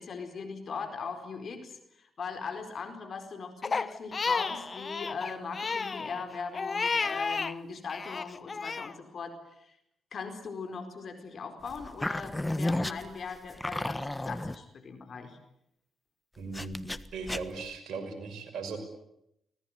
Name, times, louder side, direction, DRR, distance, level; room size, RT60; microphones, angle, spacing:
voice 1, 0.0-9.7 10.1-15.4, left 5 dB, 60° left, 7 dB, 4.5 m, -40 dB
Crying sobbing, 3.6-7.5 7.9-8.9, left 4 dB, 45° left, 1.1 m, -32 dB
sound 1, 11.7-14.5 16.5-17.7, left 1 dB, 15° left, 1.3 m, -33 dB
voice 2, 16.4-18.8, right 4 dB, 70° right, 6 dB, 5.9 m, -38 dB
25.0 x 18.0 x 9.7 m, 0.79 s
hypercardioid pair, 45°, 0 cm